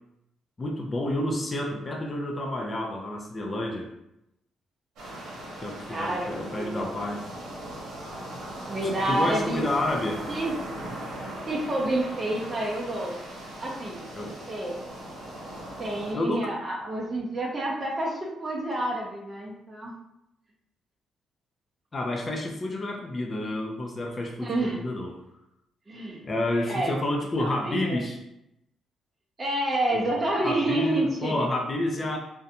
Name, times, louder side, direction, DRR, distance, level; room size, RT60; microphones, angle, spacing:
voice 1, 0.6-3.9 5.6-7.2 8.8-10.2 14.1-14.4 16.1-16.5 21.9-25.2 26.2-28.2 29.9-30.0 30.4-32.2, left 1 dB, 30° left, 1 dB, 0.4 m, -29 dB
sound 1, 5.0-16.1, right 1 dB, 80° right, 0.8 m, -39 dB
voice 2, 5.9-6.8 8.7-9.6 10.3-10.5 11.5-13.1 13.6-14.1 14.5-14.8 15.8-19.9 24.4-24.8 25.9-26.2 26.7-26.9 27.4-28.0 29.4-31.4, right 1 dB, 25° right, -4 dB, 0.5 m, -29 dB
2.5 x 2.1 x 2.7 m, 0.83 s
cardioid pair, 90°, 0 cm